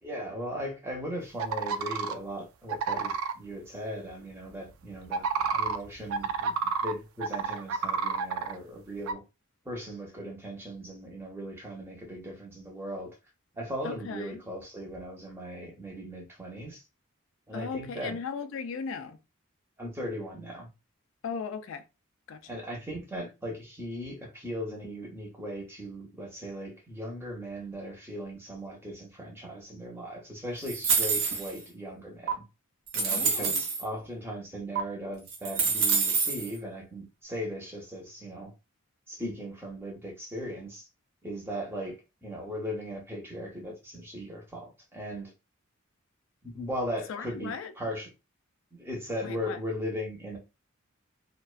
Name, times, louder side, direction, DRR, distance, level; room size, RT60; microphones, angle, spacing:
voice 1, 0.0-9.2 9.6-13.2 13.5-16.8 17.5-18.2 19.8-20.7 22.5-32.4 32.9-38.5 39.1-40.9 41.2-45.3 46.4-48.1 48.7-50.4, equal, 10° right, 0.6 m, -38 dB
sound 1, 1.4-2.1 2.7-3.3 5.1-6.9 7.2-8.5 9.1-9.2, right 5 dB, 90° right, 0.3 m, -29 dB
voice 2, 13.8-14.4 17.5-19.2 21.2-21.9 22.3-22.6 33.1-33.6 47.1-47.7 49.2-49.6, left 5 dB, 70° left, 0.3 m, -37 dB
sound 2, 30.7-31.6 32.3-32.4 32.9-33.8 34.8-34.9 35.3-36.5, right 5 dB, 60° right, 0.7 m, -27 dB
2.4 x 2.2 x 2.3 m
head